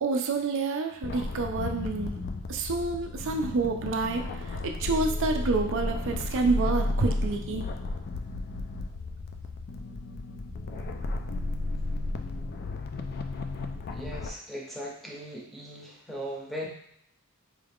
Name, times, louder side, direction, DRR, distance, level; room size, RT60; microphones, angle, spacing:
voice 1, 0.0-2.1 2.5-4.2 4.8-7.6, right 3 dB, 60° right, 3 dB, 0.4 m, -28 dB
sound 1, 1.0-14.3, left 2 dB, 45° left, 0.3 m, -33 dB
voice 2, 13.9-16.7, equal, ahead, -3 dB, 0.7 m, -38 dB
4.6 x 2.4 x 3.5 m, 0.73 s
head